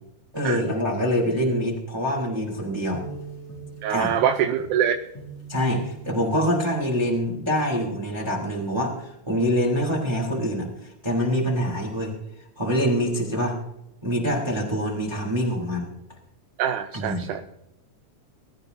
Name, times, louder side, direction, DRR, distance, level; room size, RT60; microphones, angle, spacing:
voice 1, 0.3-3.0 3.9-4.1 5.5-12.2 12.6-13.5 14.0-15.9 16.9-17.2, equal, 10° right, -2 dB, 3.2 m, -25 dB
sound 1, 2.9-8.5, right 3 dB, 75° left, 7.2 m, -42 dB
voice 2, 3.8-5.0 16.6-17.4, right 9 dB, 80° right, 6 dB, 2.3 m, -24 dB
23.0 x 13.5 x 2.8 m, 0.86 s
omnidirectional pair, 3.5 m